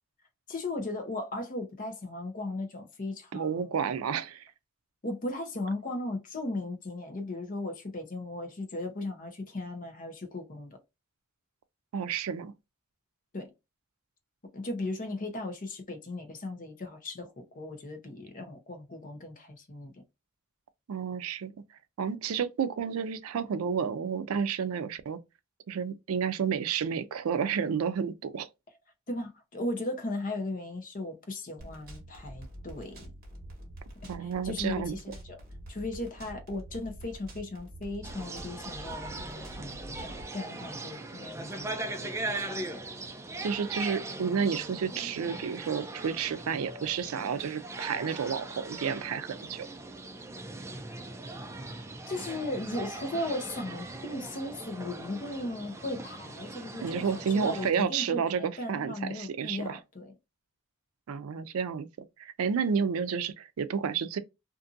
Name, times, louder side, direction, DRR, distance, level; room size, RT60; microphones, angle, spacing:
voice 1, 0.5-4.0 5.0-10.8 13.3-13.5 14.5-20.0 29.1-33.1 34.0-35.4 35.7-42.8 52.1-60.1, left 2 dB, 40° left, 0.7 m, -37 dB
voice 2, 3.3-4.4 11.9-12.5 20.9-21.5 22.0-25.2 25.7-28.5 34.1-35.0 43.4-49.7 56.8-59.8 61.1-61.9 62.2-64.2, right 6 dB, 90° right, 0.4 m, -31 dB
sound 1, 31.6-40.2, right 1 dB, 45° right, 1.1 m, -46 dB
sound 2, 38.0-57.7, right 2 dB, 15° right, 0.3 m, -40 dB
2.6 x 2.6 x 2.4 m
head